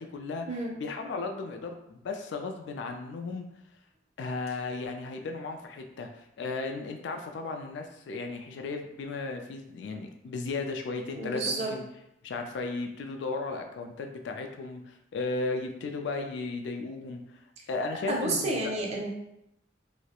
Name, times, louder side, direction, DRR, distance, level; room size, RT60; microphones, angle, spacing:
voice 1, 0.0-3.5 4.2-11.8 12.2-17.4 17.7-18.6, left 3 dB, 65° left, 4 dB, 0.3 m, -35 dB
voice 2, 11.1-11.7 18.1-19.1, right 2 dB, 35° right, -1 dB, 0.5 m, -30 dB
2.3 x 2.0 x 2.8 m, 0.80 s
head